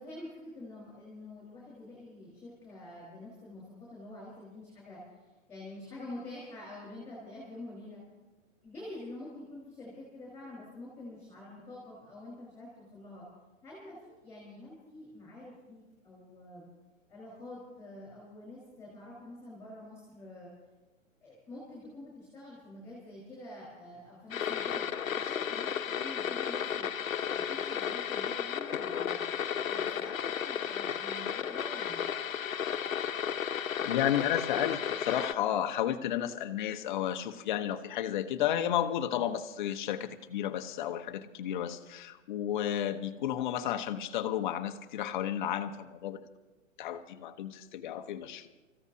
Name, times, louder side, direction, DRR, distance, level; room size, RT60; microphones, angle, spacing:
voice 1, 0.0-8.0 8.6-13.3 13.6-16.7 17.1-20.5 21.2-24.9 25.2-25.7 26.0-26.9 27.3-29.2 29.7-32.0, left 2 dB, 5° left, -5 dB, 4.4 m, -47 dB
sound 1, 24.3-35.3, left 8 dB, 90° left, 1.1 m, -33 dB
voice 2, 33.8-46.3 46.8-48.5, left 10 dB, 35° left, 7 dB, 1.0 m, -32 dB
28.5 x 15.0 x 2.8 m, 1.1 s
hypercardioid pair, 155°, 39 cm